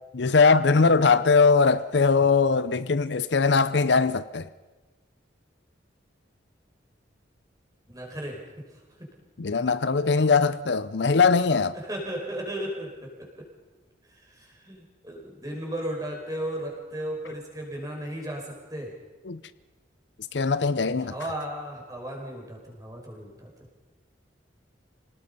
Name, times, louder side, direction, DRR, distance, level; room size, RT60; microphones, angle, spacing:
voice 1, 0.1-4.5 9.4-11.8 19.3-19.4 20.3-21.1, left 4 dB, 65° left, 0.7 m, -21 dB
voice 2, 7.9-8.4 9.0-9.1 11.7-13.4 14.1-18.9 21.0-23.5, right 1 dB, 20° right, 5.2 m, -35 dB
27.0 x 19.0 x 5.5 m
head